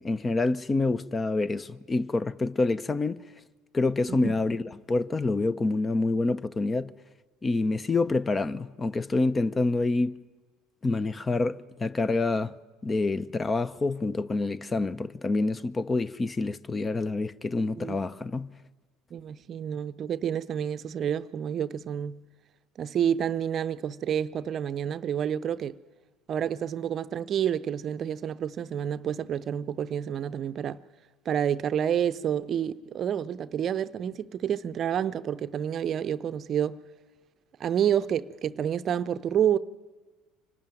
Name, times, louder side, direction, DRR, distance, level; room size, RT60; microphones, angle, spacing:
voice 1, 0.0-3.3 3.7-4.6 4.9-6.9 7.4-10.2 10.8-12.6 12.8-18.5, left 3 dB, 25° left, 0.6 m, -27 dB
voice 2, 19.1-22.2 22.8-25.8 26.3-30.8 31.3-36.8 37.6-39.6, right 9 dB, 45° right, 0.6 m, -29 dB
24.5 x 12.5 x 9.1 m
hypercardioid pair, 70°, 0 cm